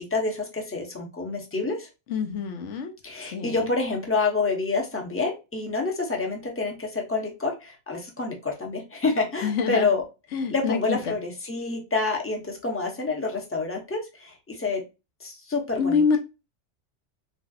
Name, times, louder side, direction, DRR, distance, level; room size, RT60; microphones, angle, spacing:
voice 1, 0.0-1.9 3.0-10.0 10.5-14.8 15.2-16.2, left 3 dB, 15° left, 0.6 m, -28 dB
voice 2, 2.1-2.9 3.3-3.5 9.4-9.9 10.3-11.1 15.8-16.2, left 5 dB, 85° left, 1.0 m, -25 dB
3.4 x 2.7 x 2.3 m
omnidirectional pair, 1.2 m